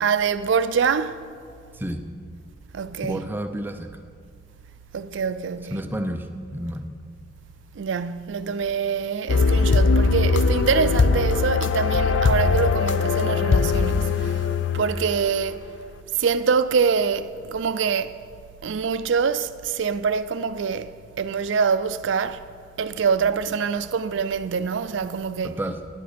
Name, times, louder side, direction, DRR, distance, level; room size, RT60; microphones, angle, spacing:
voice 1, 0.0-1.2 2.7-3.2 4.9-5.8 7.8-14.5 14.7-15.6 16.2-18.1 18.6-22.4 22.8-25.6, right 6 dB, 75° right, 0.4 m, -25 dB
voice 2, 1.7-2.0 3.0-3.9 5.7-6.9 25.4-25.8, right 1 dB, 10° right, 0.5 m, -30 dB
sound 1, 9.3-15.4, left 4 dB, 75° left, 0.5 m, -20 dB
10.0 x 9.8 x 5.1 m
head